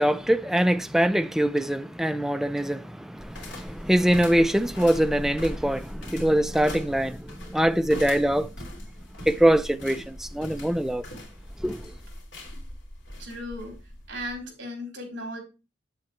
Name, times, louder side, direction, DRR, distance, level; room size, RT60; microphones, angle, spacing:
voice 1, 0.0-8.5 9.3-11.0 11.6-11.8, right 1 dB, ahead, 0.4 m, -23 dB
sound 1, 3.2-14.4, left 1 dB, 60° left, 3.2 m, -40 dB
voice 2, 13.2-13.8 14.1-15.4, equal, 65° right, 4.1 m, -36 dB
8.2 x 7.7 x 3.3 m
head